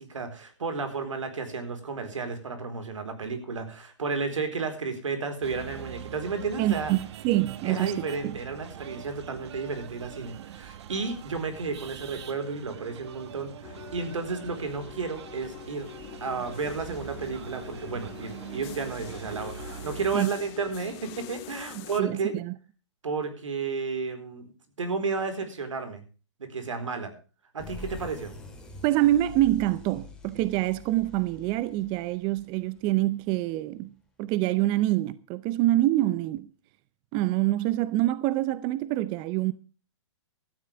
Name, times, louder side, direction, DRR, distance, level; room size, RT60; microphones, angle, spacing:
voice 1, 0.0-6.9 7.6-15.9 16.2-22.4 23.0-24.5 24.8-26.0 26.4-27.1 27.5-28.3, right 4 dB, 85° right, 4.2 m, -32 dB
sound 1, 5.4-20.2, right 10 dB, 60° right, 1.5 m, -43 dB
voice 2, 6.6-7.0 7.2-8.3 20.1-20.3 21.7-22.5 28.8-33.9 34.2-36.5 37.1-39.5, right 15 dB, 30° right, 0.7 m, -26 dB
sound 2, 13.6-22.0, left 14 dB, 35° left, 1.4 m, -45 dB
sound 3, 27.6-33.1, left 2 dB, 5° left, 3.8 m, -45 dB
16.5 x 13.5 x 3.4 m
hypercardioid pair, 135°, 16 cm